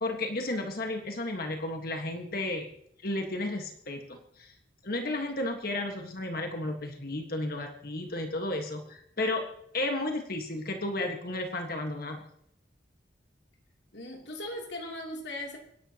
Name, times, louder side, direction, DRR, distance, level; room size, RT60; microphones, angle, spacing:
voice 1, 0.0-2.7 3.0-4.5 4.8-9.5 9.7-12.2, left 2 dB, 55° left, 4 dB, 1.7 m, -33 dB
voice 2, 13.9-15.6, left 1 dB, 70° left, 0 dB, 3.2 m, -38 dB
25.0 x 11.5 x 3.0 m, 0.70 s
head